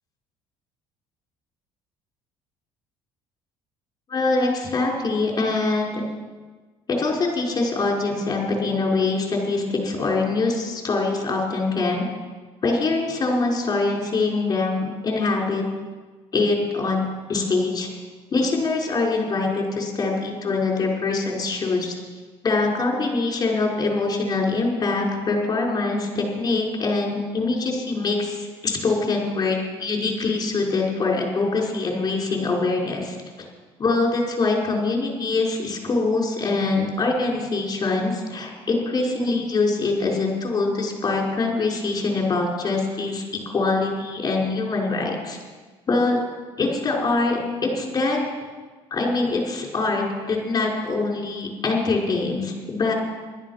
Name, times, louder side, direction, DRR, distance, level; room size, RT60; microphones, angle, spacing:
voice 1, 4.1-6.0 6.9-12.1 12.6-15.6 16.3-17.0 17.3-17.9 18.3-22.0 22.4-33.2 33.8-43.2 43.5-45.4 45.9-46.2 46.6-48.2 48.9-52.9, left 3 dB, 35° left, -1 dB, 5.4 m, -23 dB
16.5 x 13.0 x 5.9 m, 1.3 s
cardioid pair, 95°, 11 cm